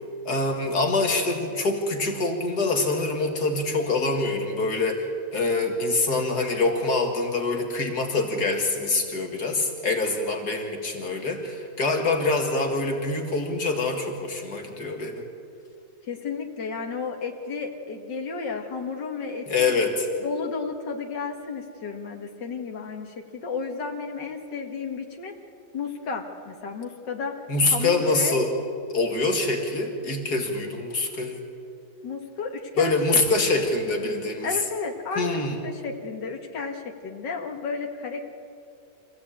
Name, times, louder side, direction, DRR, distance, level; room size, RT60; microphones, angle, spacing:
voice 1, 0.2-15.2 19.5-20.1 27.5-28.5 28.9-31.4 32.8-34.5 35.2-35.6, left 3 dB, 65° left, 3 dB, 2.5 m, -25 dB
voice 2, 16.1-19.7 20.2-25.3 25.7-27.4 27.6-28.4 32.0-33.0 33.3-33.7 34.4-38.2, left 4 dB, 85° left, 3 dB, 2.4 m, -33 dB
25.0 x 16.0 x 8.7 m, 2.5 s
omnidirectional pair, 1.9 m